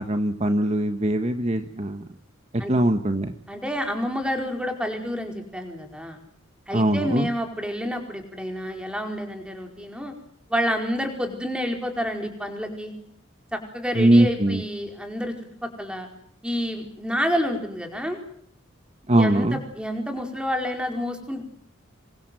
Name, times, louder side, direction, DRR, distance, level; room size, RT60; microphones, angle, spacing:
voice 1, 0.0-2.1 2.7-3.3 6.7-7.3 13.9-14.6 19.1-19.6, right 1 dB, 35° right, 7 dB, 1.4 m, -21 dB
voice 2, 3.5-6.2 6.7-10.2 10.5-12.9 13.5-15.3 15.6-16.1 16.4-18.2 19.1-21.4, equal, 5° right, 4 dB, 4.8 m, -29 dB
27.0 x 24.0 x 7.8 m, 0.65 s
head